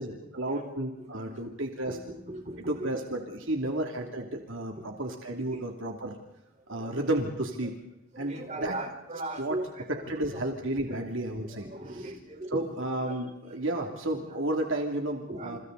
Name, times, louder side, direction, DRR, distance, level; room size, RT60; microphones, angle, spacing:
voice 1, 0.0-2.0 2.7-6.2 6.7-7.8 8.2-8.7 9.4-9.6 10.1-11.7 11.9-12.1 12.5-15.6, right 1 dB, 65° right, 2 dB, 2.9 m, -32 dB
voice 2, 1.0-1.4 1.9-2.0 2.3-2.9 3.4-3.5 5.5-5.6 6.7-7.1 8.1-10.5 10.9-11.0 11.4-13.6 14.1-14.4 15.3-15.6, right 1 dB, 30° right, 3 dB, 4.6 m, -39 dB
30.0 x 29.5 x 4.1 m, 0.92 s
head